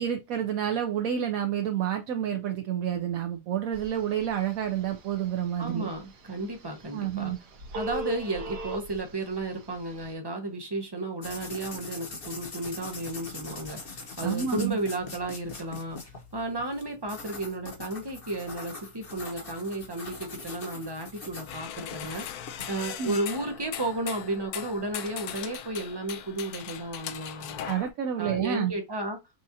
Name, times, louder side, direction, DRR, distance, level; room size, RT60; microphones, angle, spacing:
voice 1, 0.0-5.9 6.9-7.4 14.2-14.8 23.0-23.2 27.7-28.7, right 9 dB, 70° right, 0.9 m, -29 dB
Telephone, 3.7-10.1, right 1 dB, 90° right, 1.5 m, -42 dB
voice 2, 5.6-7.3 7.7-16.0 16.3-22.3 22.7-27.6 28.2-29.2, right 2 dB, 30° right, 0.4 m, -33 dB
sound 1, 11.2-22.9, left 3 dB, 40° left, 1.1 m, -43 dB
sound 2, 21.5-27.9, left 9 dB, 75° left, 1.1 m, -39 dB
6.1 x 2.4 x 2.7 m
omnidirectional pair, 1.7 m